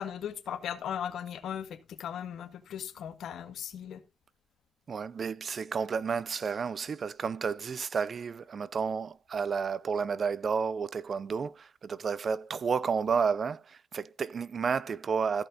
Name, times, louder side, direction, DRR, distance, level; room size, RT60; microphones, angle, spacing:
voice 1, 0.0-1.7 2.0-4.0, left 9 dB, 70° left, 1.6 m, -37 dB
voice 2, 4.9-15.5, right 6 dB, 45° right, 0.5 m, -31 dB
15.0 x 5.4 x 3.9 m
cardioid pair, 90°, 0 cm